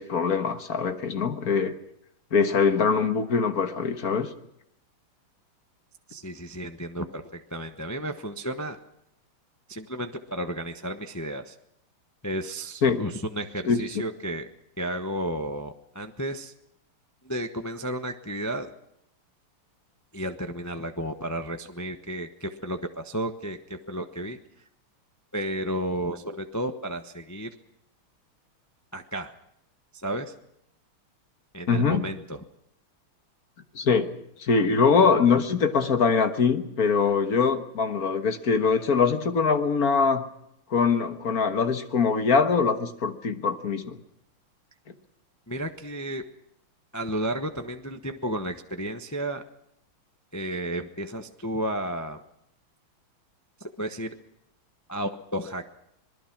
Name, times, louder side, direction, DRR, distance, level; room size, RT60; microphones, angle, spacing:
voice 1, 0.0-1.7 2.3-4.3 12.8-13.0 13.7-13.8 31.7-32.1 33.7-34.1 34.4-40.2 40.7-44.0, left 5 dB, 45° left, 7 dB, 1.7 m, -23 dB
voice 2, 6.1-8.8 9.7-11.5 12.2-14.5 14.8-16.5 17.2-18.7 20.1-24.4 25.3-27.5 28.9-29.3 30.0-30.3 31.5-32.4 45.5-46.2 46.9-49.4 50.3-52.2 53.6-54.1 54.9-55.6, right 1 dB, 25° left, 6 dB, 0.4 m, -32 dB
26.5 x 20.0 x 6.0 m, 0.78 s
omnidirectional pair, 2.4 m